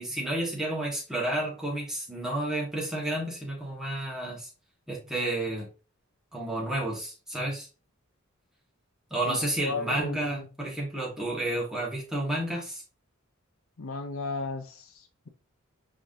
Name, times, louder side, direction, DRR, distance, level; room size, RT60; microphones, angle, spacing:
voice 1, 0.0-4.5 4.9-5.7 6.3-7.7 9.1-12.8, right 1 dB, 5° right, 1.4 m, -31 dB
voice 2, 9.3-10.5 13.8-15.3, left 3 dB, 70° left, 0.6 m, -35 dB
4.8 x 3.7 x 2.6 m
head